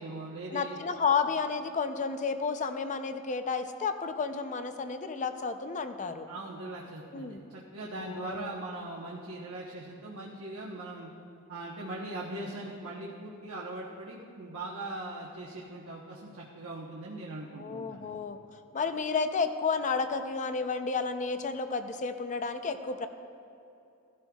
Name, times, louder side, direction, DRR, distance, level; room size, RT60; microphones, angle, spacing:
voice 1, 0.0-0.8 6.3-11.1 11.5-18.2, right 2 dB, 65° right, -4 dB, 1.0 m, -40 dB
voice 2, 0.5-6.3 7.1-7.4 8.0-8.5 17.5-18.4 18.7-23.1, left 5 dB, 35° left, 9 dB, 0.5 m, -31 dB
16.0 x 12.0 x 2.3 m, 2.6 s
head